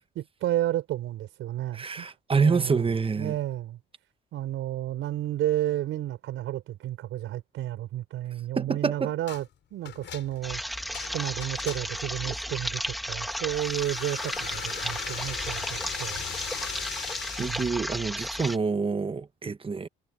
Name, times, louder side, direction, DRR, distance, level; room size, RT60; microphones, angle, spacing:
voice 1, 0.1-2.9 3.1-3.8 4.3-9.4 9.7-16.2 17.4-17.8, right 13 dB, 85° right, 5.2 m, -32 dB
voice 2, 1.7-3.3 8.6-9.1 17.4-19.9, right 5 dB, 25° right, 1.1 m, -27 dB
sound 1, 9.3-9.5 9.8-12.1 13.5-17.7, left 10 dB, 70° left, 7.0 m, -39 dB
sound 2, 10.4-18.6, equal, ahead, 2.1 m, -34 dB
cardioid pair, 90°, 20 cm